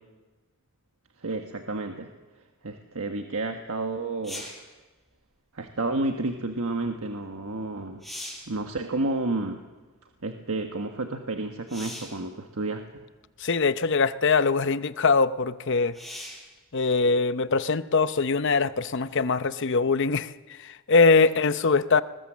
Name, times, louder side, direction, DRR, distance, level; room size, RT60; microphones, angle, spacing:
voice 1, 1.2-2.1 2.6-4.4 5.5-8.0 8.5-9.6 10.2-12.8, right 2 dB, 80° right, 4 dB, 1.4 m, -30 dB
sound 1, 4.2-4.7 7.3-7.4 7.8-8.6 11.7-12.2 13.2-13.3 15.9-16.5 20.1-20.2, left 1 dB, ahead, 5.5 m, -39 dB
voice 2, 13.4-16.0 16.7-20.3 20.6-22.0, left 4 dB, 60° left, 13 dB, 0.7 m, -22 dB
21.0 x 21.0 x 7.5 m, 1.2 s
head